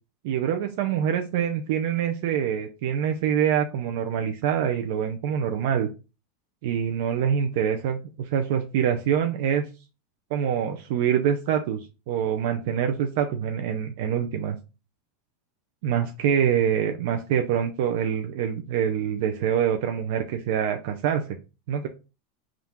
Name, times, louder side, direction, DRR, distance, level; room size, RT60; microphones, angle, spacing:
voice 1, 0.2-5.9 6.6-9.6 10.3-14.6 15.8-21.2 21.7-21.9, right 8 dB, 70° right, 5 dB, 0.5 m, -25 dB
3.6 x 2.4 x 4.3 m, 0.30 s
hypercardioid pair, 110°, 0 cm